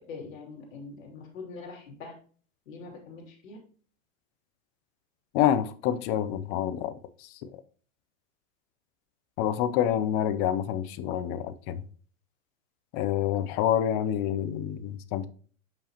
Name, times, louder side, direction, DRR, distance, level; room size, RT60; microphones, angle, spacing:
voice 1, 0.0-2.1 2.7-3.6, left 4 dB, 75° left, 2.7 m, -43 dB
voice 2, 5.3-7.6 9.4-11.8 12.9-15.3, left 10 dB, 40° left, 0.6 m, -27 dB
7.0 x 5.4 x 2.9 m
supercardioid pair, 130°, 40 cm